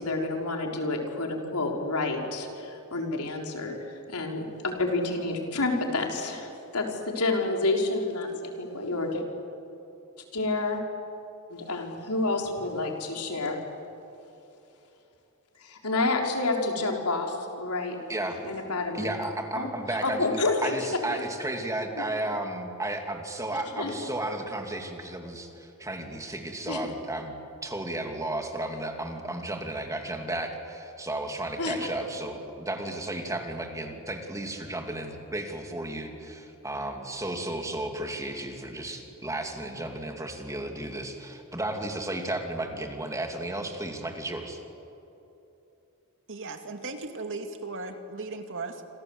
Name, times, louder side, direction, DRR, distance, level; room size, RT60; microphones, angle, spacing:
voice 1, 0.0-9.2 10.3-10.8 11.5-13.6 15.6-18.0 18.5-19.1 19.5-19.7 20.0-20.8 21.1-21.2 23.8-23.9 26.7-26.8 31.6-31.7, left 2 dB, 90° left, 1 dB, 4.2 m, -29 dB
voice 2, 18.1-18.4 18.9-20.3 20.6-27.3 27.6-44.6, right 1 dB, 15° right, 3 dB, 2.8 m, -33 dB
voice 3, 46.3-48.8, right 3 dB, 60° right, 5 dB, 2.3 m, -37 dB
27.5 x 26.5 x 8.0 m, 2.9 s
head